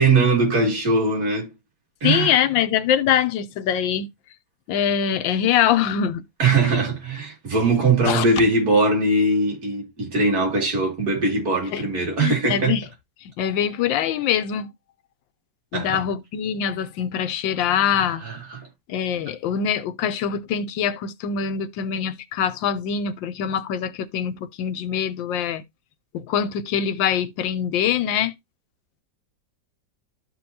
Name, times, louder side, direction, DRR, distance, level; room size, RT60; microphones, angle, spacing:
voice 1, 0.0-1.5 2.0-2.4 6.4-12.8 15.7-16.0 18.0-18.7, right 3 dB, 55° right, 2.9 m, -21 dB
voice 2, 2.0-4.1 4.7-6.2 8.1-8.3 11.7-11.8 12.2-12.8 13.2-14.7 15.7-18.2 18.9-25.6 26.1-28.3, left 9 dB, 85° left, 1.4 m, -23 dB
12.5 x 4.4 x 2.8 m
omnidirectional pair, 2.0 m